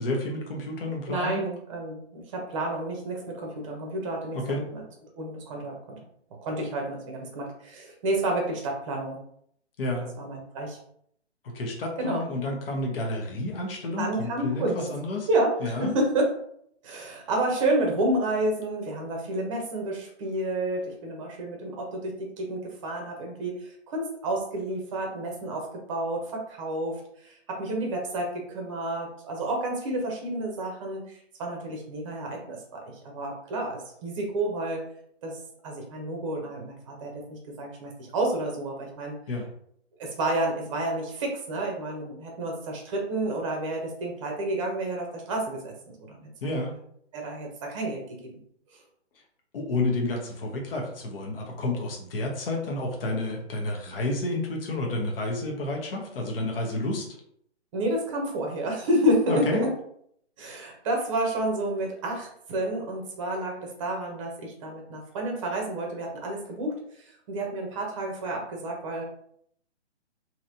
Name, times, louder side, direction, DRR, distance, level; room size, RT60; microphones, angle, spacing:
voice 1, 0.0-1.4 4.3-4.6 9.8-10.1 11.4-15.3 15.6-15.9 39.3-39.5 46.4-46.7 49.5-57.1 59.3-59.6, left 2 dB, 55° left, 0 dB, 0.9 m, -30 dB
voice 2, 1.1-4.8 5.2-6.0 6.4-9.2 10.2-10.8 12.0-12.2 14.0-14.8 15.3-16.3 16.8-34.8 35.2-35.4 35.6-39.2 40.0-46.5 47.1-48.0 57.7-59.7 60.4-69.0, right 1 dB, 30° right, 1 dB, 0.7 m, -30 dB
3.0 x 2.8 x 2.6 m, 0.68 s
hypercardioid pair, 140°, 35 cm